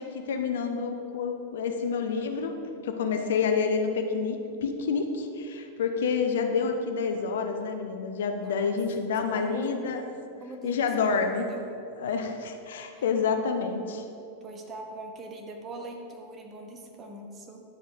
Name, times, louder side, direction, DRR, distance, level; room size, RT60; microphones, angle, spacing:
voice 1, 0.0-2.5 2.8-10.0 10.6-11.5 12.0-14.0, left 5 dB, 60° left, 6 dB, 0.7 m, -28 dB
voice 2, 8.4-8.8 9.3-9.7 10.4-11.2 11.5-11.6 12.9-13.0 14.4-17.6, right 2 dB, 25° right, 2 dB, 1.1 m, -42 dB
10.5 x 7.5 x 3.5 m, 2.6 s
figure-of-eight pair, 90°, 0 cm